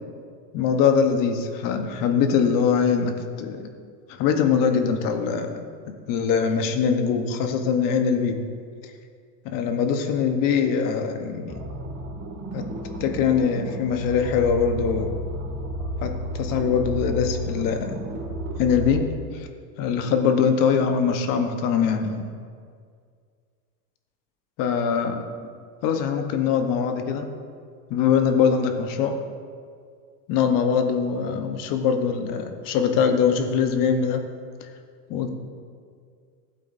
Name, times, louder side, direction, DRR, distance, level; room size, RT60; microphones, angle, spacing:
voice 1, 0.5-3.7 4.1-8.4 9.4-11.6 12.5-12.6 13.0-15.1 16.0-18.0 18.6-19.0 19.3-19.5 19.8-22.3 24.6-25.2 25.8-27.3 27.9-29.2 30.3-34.2 35.1-35.3, left 6 dB, 40° left, 6 dB, 1.1 m, -22 dB
sound 1, 11.5-19.0, right 1 dB, 35° right, 1.8 m, -32 dB
15.5 x 8.2 x 2.7 m, 2.1 s
supercardioid pair, 130°, 49 cm